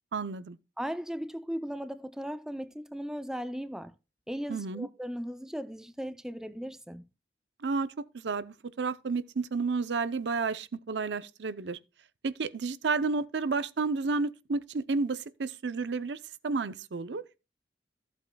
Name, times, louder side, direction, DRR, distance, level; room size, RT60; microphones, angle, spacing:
voice 1, 0.1-0.6 4.5-4.9 7.6-11.8 12.2-17.3, right 4 dB, 90° right, 0.6 m, -31 dB
voice 2, 0.8-3.9 4.3-7.0, equal, 5° right, 0.4 m, -37 dB
14.5 x 7.9 x 2.2 m
head